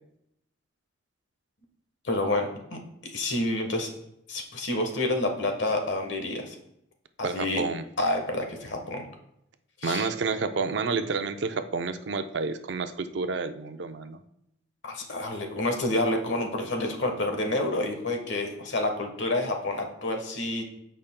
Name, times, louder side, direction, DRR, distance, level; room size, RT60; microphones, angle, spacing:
voice 1, 2.0-3.9 4.3-6.5 7.2-7.6 8.0-9.1 9.8-10.1 14.8-20.6, left 2 dB, 70° left, 4 dB, 1.2 m, -28 dB
voice 2, 7.2-7.8 9.8-14.2, right 4 dB, 70° right, 9 dB, 0.5 m, -29 dB
14.0 x 5.0 x 2.2 m, 0.79 s
head